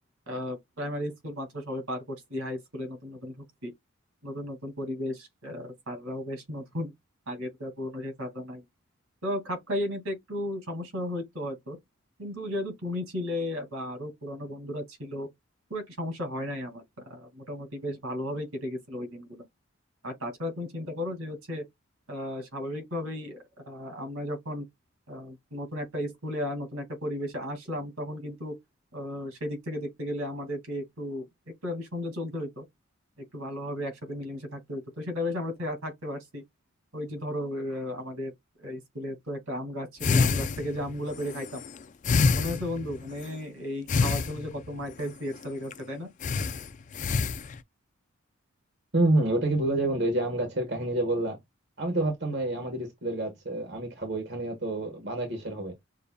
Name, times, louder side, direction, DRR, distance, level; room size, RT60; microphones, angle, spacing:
voice 1, 0.3-3.3 3.6-3.7 4.2-6.9 7.3-8.6 9.2-11.8 12.2-15.3 15.7-19.4 20.0-21.6 22.1-24.7 25.1-28.6 28.9-31.2 31.6-32.6 33.3-36.4 36.9-38.3 38.6-41.6 42.3-46.1, left 1 dB, 80° right, 2.5 m, -34 dB
sound 1, 40.0-43.3 43.9-44.8 45.4-45.5 45.7-45.8 46.2-47.6, left 4 dB, 35° left, 0.3 m, -27 dB
voice 2, 48.9-51.4 51.8-55.7, right 2 dB, 55° right, 1.5 m, -28 dB
6.6 x 2.6 x 2.3 m
head